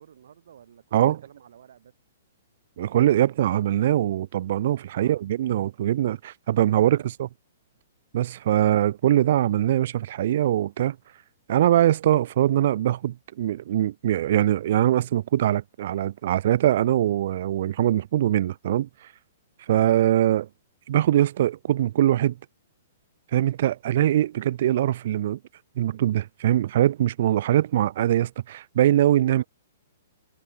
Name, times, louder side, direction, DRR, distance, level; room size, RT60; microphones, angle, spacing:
voice 1, 0.0-1.9 5.0-5.2 6.6-7.3 19.6-19.8 29.2-29.5, right 9 dB, 65° right, 7.3 m, -51 dB
voice 2, 2.8-7.0 8.1-11.0 11.5-18.9 19.7-20.5 20.9-22.4 23.3-25.4 25.8-29.4, right 12 dB, 45° right, 0.5 m, -22 dB
hypercardioid pair, 170°, 0 cm